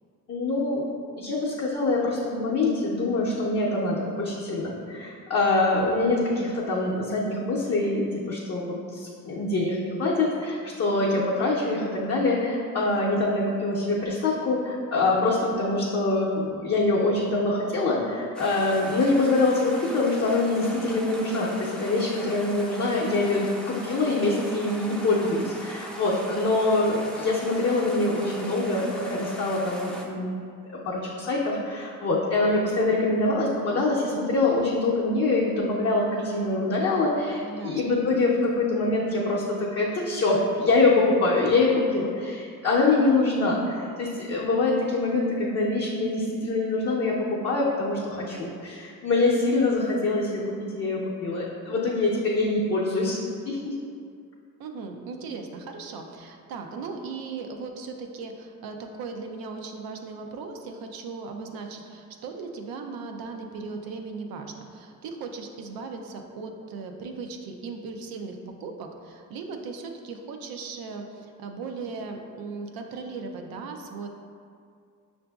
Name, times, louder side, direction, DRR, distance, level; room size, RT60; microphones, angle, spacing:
voice 1, 0.3-0.8 1.2-30.4 30.7-53.2 53.5-53.7, left 2 dB, 45° left, -6 dB, 0.6 m, -24 dB
sound 1, 18.3-30.0, equal, 5° left, 0.4 m, -40 dB
voice 2, 37.4-38.0 54.6-74.1, right 4 dB, 85° right, 4 dB, 0.5 m, -37 dB
5.8 x 2.6 x 2.3 m, 2.3 s
cardioid pair, 85°, 35 cm